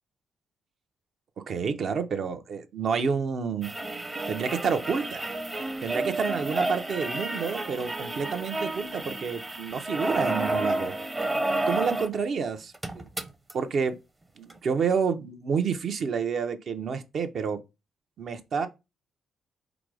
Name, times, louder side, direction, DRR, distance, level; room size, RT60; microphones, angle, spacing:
voice 1, 1.5-3.7 4.3-5.3 5.8-10.9 11.7-13.1 13.5-14.0 14.4-17.6 18.2-18.7, right 6 dB, 55° right, 0.7 m, -29 dB
sound 1, 3.6-12.2 12.5-12.6 12.7-13.5 14.5-14.6, right 2 dB, 20° right, 0.7 m, -31 dB
4.9 x 2.0 x 4.7 m
cardioid pair, 90°, 0 cm